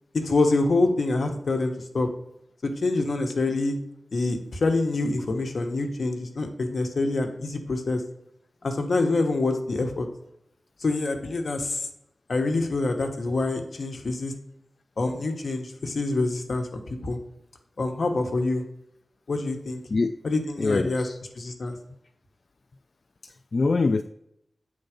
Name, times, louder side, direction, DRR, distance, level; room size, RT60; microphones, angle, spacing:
voice 1, 0.1-2.1 2.6-3.8 4.1-8.0 8.6-10.1 10.8-11.9 12.3-14.3 15.0-17.2 17.8-18.6 19.3-19.8 20.2-21.1 21.4-21.7, left 2 dB, 70° left, 5 dB, 1.1 m, -26 dB
voice 2, 20.6-21.2 23.2-24.0, left 3 dB, 55° left, 9 dB, 0.3 m, -24 dB
8.9 x 3.9 x 5.1 m, 0.81 s
wide cardioid pair, 105°, 0 cm